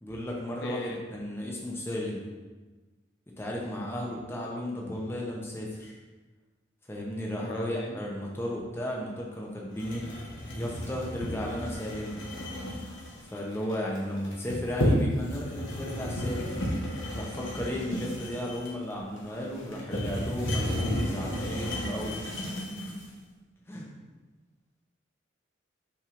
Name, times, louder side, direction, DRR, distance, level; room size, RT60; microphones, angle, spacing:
voice 1, 0.0-2.2 3.4-6.0 6.9-10.1 10.5-12.2 13.3-16.5 17.1-22.3 23.7-23.9, left 1 dB, 10° left, -3 dB, 0.5 m, -34 dB
voice 2, 0.6-1.0 4.2-4.3 7.4-8.0, left 2 dB, 70° left, 2 dB, 0.5 m, -39 dB
sound 1, 9.8-23.1, equal, 85° left, 1.0 m, -32 dB
5.6 x 3.2 x 2.5 m, 1.3 s
head